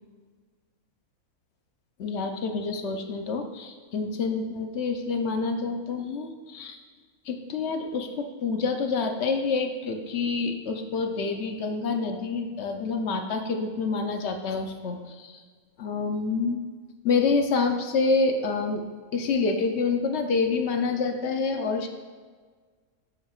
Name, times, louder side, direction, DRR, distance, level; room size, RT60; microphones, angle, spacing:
voice 1, 2.0-6.8 7.3-15.4 15.8-16.6 17.0-18.8 19.1-21.9, left 4 dB, 55° left, 5 dB, 0.9 m, -27 dB
12.5 x 5.7 x 2.4 m, 1.5 s
omnidirectional pair, 1.5 m